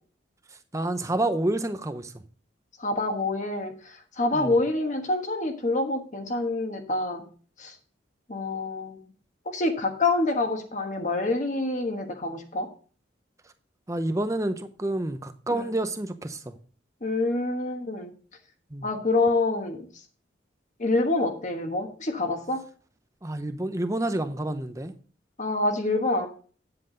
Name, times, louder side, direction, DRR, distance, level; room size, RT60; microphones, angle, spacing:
voice 1, 0.7-2.1 4.3-4.6 13.9-16.5 18.7-18.9 23.2-24.9, right 1 dB, 15° right, 0.7 m, -29 dB
voice 2, 2.8-7.2 7.6-7.7 8.3-9.0 9.5-12.7 15.5-15.6 17.0-18.1 18.8-19.9 20.8-22.6 25.4-26.3, left 2 dB, 40° left, 1.2 m, -26 dB
9.3 x 7.8 x 3.8 m
head